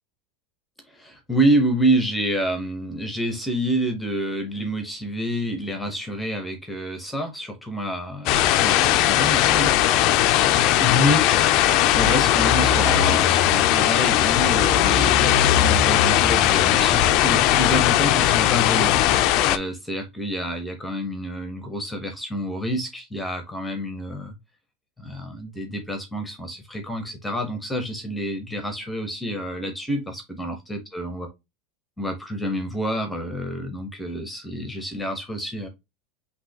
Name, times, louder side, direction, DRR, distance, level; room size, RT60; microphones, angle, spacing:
voice 1, 0.9-9.7 10.7-24.3 25.0-31.3 32.0-35.7, equal, 5° left, 0.7 m, -28 dB
sound 1, 8.3-19.6, left 12 dB, 40° left, 0.4 m, -18 dB
6.0 x 2.8 x 2.7 m
supercardioid pair, 180°, 0 cm